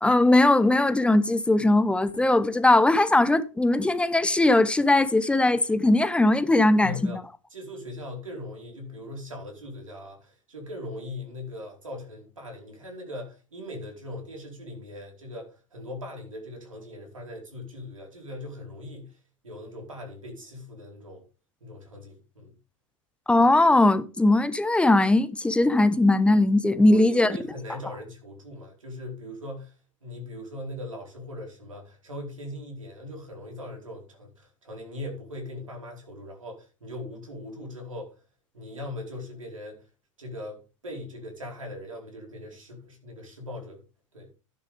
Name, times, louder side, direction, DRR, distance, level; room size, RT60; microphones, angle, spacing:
voice 1, 0.0-7.1 23.3-27.4, left 2 dB, 5° left, 0.9 m, -20 dB
voice 2, 6.8-7.2 7.5-19.2 19.4-21.2 21.6-22.5 26.9-29.8 30.0-38.1 38.5-39.8 40.2-43.8 44.1-44.3, left 1 dB, 75° right, 4.6 m, -40 dB
12.5 x 10.5 x 3.5 m
figure-of-eight pair, 90°, 17 cm